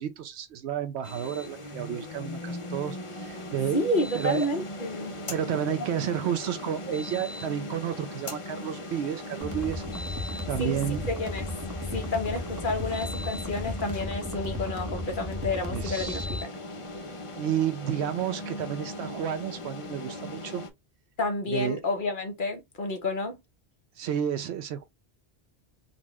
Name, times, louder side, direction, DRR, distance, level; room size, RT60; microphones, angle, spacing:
voice 1, 0.0-3.8 4.1-4.5 5.3-11.1 15.7-16.3 17.4-20.6 21.5-21.8 24.0-24.8, right 9 dB, 85° right, 0.9 m, -31 dB
sound 1, 1.0-20.7, left 1 dB, 35° left, 0.7 m, -38 dB
voice 2, 3.7-5.1 5.8-5.9 10.6-10.8 11.1-11.5 11.9-16.5 21.2-23.4, left 2 dB, 55° left, 1.1 m, -30 dB
sound 2, 9.4-16.4, left 1 dB, 20° right, 0.7 m, -35 dB
4.0 x 2.3 x 3.0 m
omnidirectional pair, 1.1 m